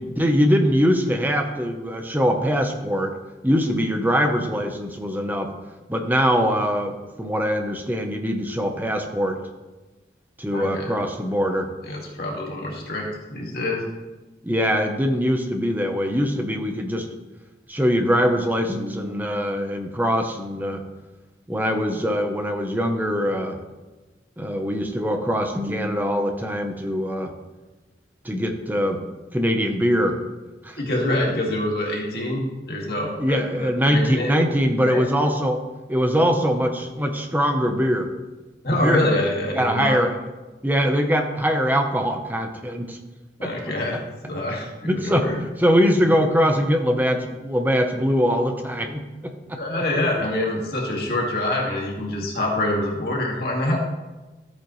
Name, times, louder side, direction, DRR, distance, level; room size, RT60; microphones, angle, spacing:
voice 1, 0.0-3.1 3.4-5.5 5.9-9.4 10.4-11.7 14.4-17.1 17.7-20.8 21.5-23.6 24.4-27.3 28.2-29.0 29.3-30.2 30.6-30.8 33.2-35.6 35.9-38.1 38.7-39.1 39.5-40.2 40.6-43.0 43.4-43.5 44.8-49.6, equal, 10° right, 4 dB, 0.9 m, -22 dB
voice 2, 10.5-10.9 11.9-13.0 13.3-13.8 30.8-34.4 34.9-35.0 38.6-40.0 43.4-44.0 44.3-45.4 49.6-53.8, left 1 dB, 60° left, -2 dB, 2.2 m, -25 dB
13.5 x 8.6 x 3.2 m, 1.2 s
head